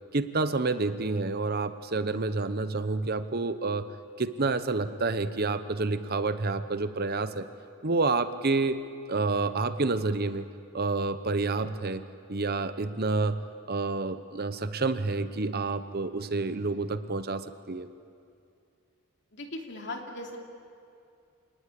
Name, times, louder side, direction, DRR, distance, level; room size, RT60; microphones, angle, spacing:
voice 1, 0.1-3.9 4.2-7.5 7.8-8.8 9.1-10.5 10.7-12.0 12.3-17.9, right 3 dB, 45° right, 11 dB, 0.8 m, -29 dB
voice 2, 19.3-20.4, left 2 dB, 50° left, 1 dB, 3.0 m, -38 dB
27.5 x 19.5 x 8.6 m, 2.5 s
head